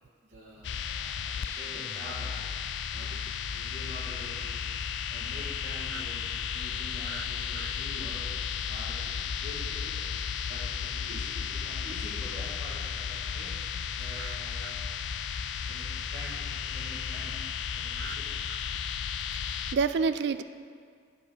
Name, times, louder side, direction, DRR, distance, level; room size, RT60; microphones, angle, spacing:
voice 1, 0.3-2.5 2.9-3.2 3.5-4.5 5.1-8.2 8.7-10.1 10.5-13.6 14.0-14.8 15.6-18.4, equal, 45° right, -12 dB, 2.2 m, -46 dB
sound 1, 0.6-19.8, left 7 dB, 70° left, 0.4 m, -34 dB
voice 2, 19.7-20.4, right 5 dB, 65° right, 11 dB, 0.3 m, -28 dB
7.9 x 4.8 x 6.2 m, 2.1 s
head